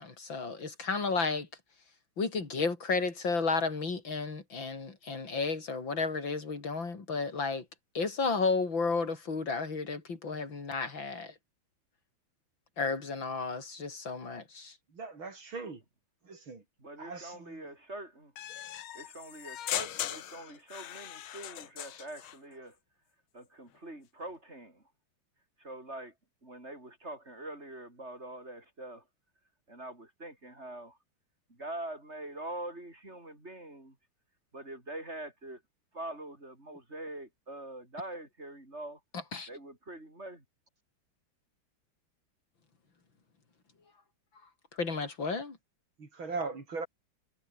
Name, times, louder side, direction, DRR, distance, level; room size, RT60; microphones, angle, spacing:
voice 1, 0.0-1.5 2.2-7.7 7.9-11.3 12.8-14.7 39.3-39.5 44.8-45.6, left 4 dB, 65° left, 4.3 m, -32 dB
voice 2, 14.9-15.8 16.2-16.6 17.0-17.6 46.0-46.9, right 4 dB, 75° right, 4.9 m, -39 dB
voice 3, 16.8-18.3 18.9-22.8 23.3-24.9 25.6-26.1 26.4-29.1 29.7-31.0 31.5-34.0 34.5-35.6 35.9-39.0 39.5-40.5, right 1 dB, 30° right, 7.2 m, -44 dB
sound 1, 18.4-22.4, left 11 dB, 80° left, 1.9 m, -39 dB
omnidirectional pair, 2.2 m